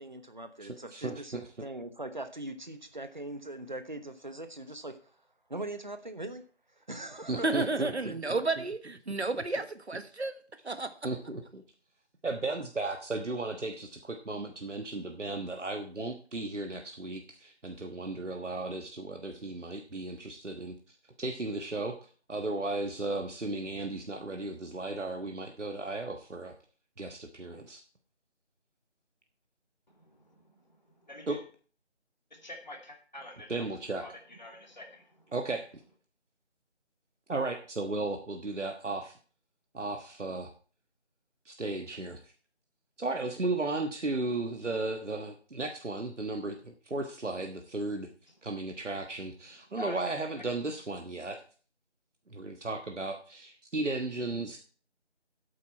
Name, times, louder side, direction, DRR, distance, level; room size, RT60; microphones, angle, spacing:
voice 1, 0.0-5.0 5.5-6.5 6.8-7.5 8.0-8.4, right 1 dB, 40° right, 10 dB, 1.0 m, -41 dB
voice 2, 0.6-1.5 7.3-8.2 9.3-9.4 11.0-11.6 12.2-26.5 27.0-27.8 31.3-31.4 33.5-34.0 35.3-35.7 37.3-39.2 39.7-40.5 41.4-42.3 43.0-48.1 48.4-51.4 52.3-54.6, right 2 dB, 90° right, 4 dB, 1.5 m, -35 dB
voice 3, 7.4-10.4 10.6-10.9, right 3 dB, 65° right, 11 dB, 1.3 m, -32 dB
voice 4, 29.9-31.4 32.3-33.7 34.0-35.3 49.7-50.2, left 1 dB, 40° left, 2 dB, 2.5 m, -47 dB
11.5 x 8.6 x 4.6 m, 0.41 s
figure-of-eight pair, 175°, 35 cm